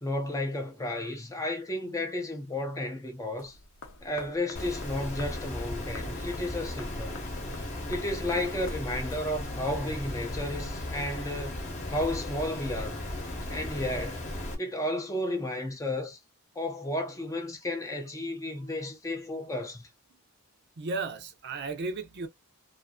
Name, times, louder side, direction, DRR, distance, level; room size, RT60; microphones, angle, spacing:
voice 1, 0.0-3.6 4.0-7.2 7.9-11.6 11.9-13.1 13.5-14.3 14.6-16.2 16.6-19.9, left 1 dB, 15° left, 0.5 m, -33 dB
sound 1, 3.4-9.7, left 4 dB, 60° left, 0.7 m, -50 dB
Water, 4.5-14.5, left 1 dB, 35° left, 0.9 m, -36 dB
voice 2, 20.8-22.3, right 3 dB, 50° right, 0.6 m, -34 dB
2.5 x 2.5 x 2.2 m
head